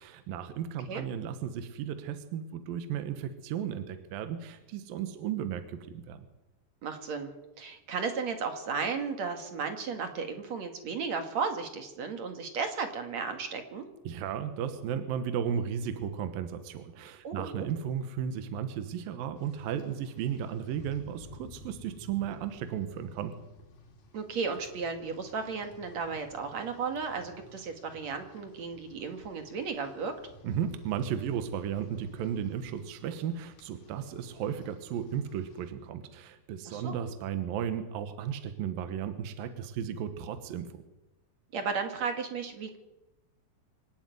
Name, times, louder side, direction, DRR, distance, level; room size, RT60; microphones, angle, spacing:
voice 1, 0.0-6.3 14.1-23.3 30.4-40.8, right 8 dB, 75° right, 9 dB, 2.9 m, -34 dB
voice 2, 6.8-7.3 7.6-13.9 17.2-17.7 24.1-30.1 36.7-37.0 41.5-42.8, right 5 dB, 55° right, 6 dB, 2.8 m, -34 dB
Rain, 19.4-35.7, left 1 dB, 70° left, 4.8 m, -54 dB
25.5 x 11.5 x 9.5 m, 1.0 s
omnidirectional pair, 4.2 m